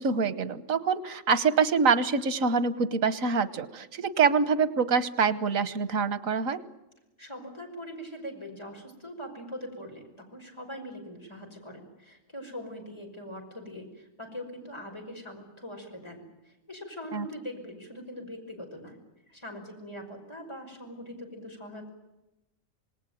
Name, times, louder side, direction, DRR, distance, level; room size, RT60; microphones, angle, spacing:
voice 1, 0.0-6.6 17.1-17.2, right 5 dB, 90° right, 14 dB, 1.6 m, -25 dB
voice 2, 7.2-19.0 19.3-21.9, equal, 20° left, 1 dB, 5.6 m, -42 dB
27.0 x 19.5 x 9.2 m, 0.99 s
omnidirectional pair, 1.4 m